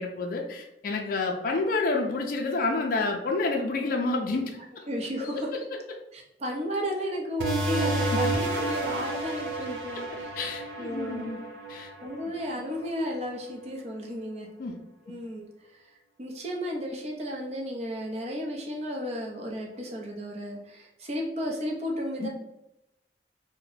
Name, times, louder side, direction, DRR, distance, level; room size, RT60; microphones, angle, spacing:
voice 1, 0.0-4.8 5.5-5.6 10.4-11.4 11.7-11.9 14.6-14.7 22.2-22.3, left 3 dB, 50° left, 1 dB, 0.4 m, -29 dB
voice 2, 4.9-5.5 6.1-10.3 10.8-11.3 12.0-14.5 15.1-15.5 15.7-15.8 16.2-22.3, equal, 35° right, 0 dB, 0.6 m, -33 dB
sound 1, 7.4-12.6, right 1 dB, 80° right, 0.6 m, -30 dB
2.8 x 2.1 x 4.0 m, 0.88 s
head